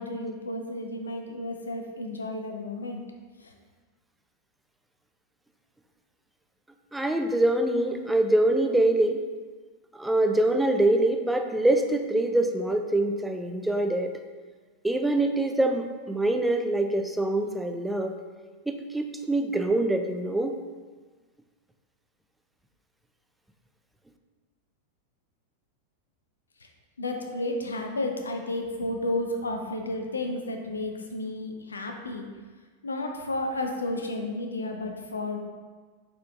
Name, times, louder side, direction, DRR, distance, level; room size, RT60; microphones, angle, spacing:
voice 1, 0.0-3.0 3.4-3.5 27.0-32.3 32.8-35.4, left 2 dB, 75° left, 3 dB, 0.5 m, -32 dB
voice 2, 6.9-9.2 9.9-14.2 14.8-18.2 18.7-20.6, right 1 dB, 5° right, 5 dB, 0.3 m, -24 dB
4.3 x 3.7 x 2.5 m, 1.4 s
figure-of-eight pair, 90°, 0 cm